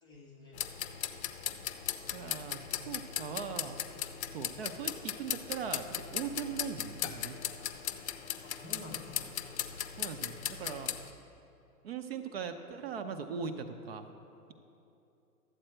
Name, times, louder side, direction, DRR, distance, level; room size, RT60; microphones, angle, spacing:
voice 1, 0.0-0.7 8.4-9.3, left 1 dB, 10° left, -3 dB, 0.5 m, -49 dB
sound 1, 0.5-11.1, left 10 dB, 45° left, 0.7 m, -38 dB
voice 2, 2.1-3.8 4.3-7.4 10.0-10.9 11.8-14.1, right 6 dB, 40° right, 8 dB, 0.6 m, -40 dB
12.5 x 7.9 x 4.4 m, 2.8 s
figure-of-eight pair, 125°, 47 cm